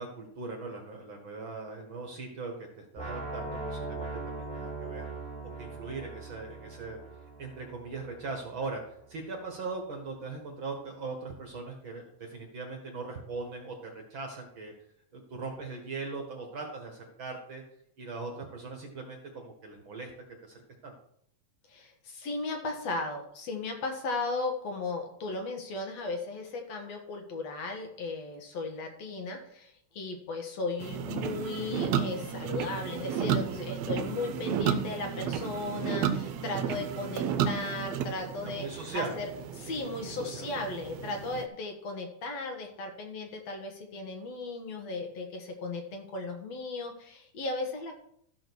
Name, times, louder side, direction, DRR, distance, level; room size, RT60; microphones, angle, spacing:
voice 1, 0.0-5.1 5.6-7.0 7.4-14.7 15.1-17.6 18.0-20.1 20.4-21.0 38.4-39.2 40.2-40.5, right 3 dB, 50° right, 2 dB, 1.8 m, -40 dB
sound 1, 3.0-8.9, right 3 dB, ahead, 1.9 m, -40 dB
voice 2, 21.7-39.3 39.6-48.0, left 3 dB, 60° left, 3 dB, 2.5 m, -36 dB
sound 2, 30.8-41.4, right 7 dB, 70° right, 1.8 m, -33 dB
13.5 x 5.1 x 6.2 m, 0.69 s
omnidirectional pair, 3.5 m